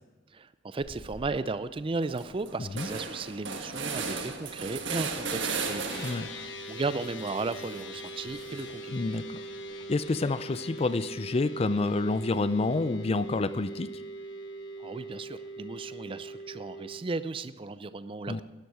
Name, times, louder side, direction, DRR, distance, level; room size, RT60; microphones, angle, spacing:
voice 1, 0.3-9.0 14.8-18.4, right 3 dB, 30° right, 13 dB, 0.4 m, -35 dB
sound 1, 0.8-1.3 1.7-1.8 2.0-6.4 6.8-8.9, right 4 dB, 80° right, 1.4 m, -36 dB
sound 2, 5.9-17.0, right 1 dB, 85° left, 1.2 m, -41 dB
voice 2, 8.9-9.2 9.9-13.9 18.3-18.4, left 3 dB, 30° left, 15 dB, 0.4 m, -28 dB
13.0 x 11.0 x 4.8 m, 1.2 s
head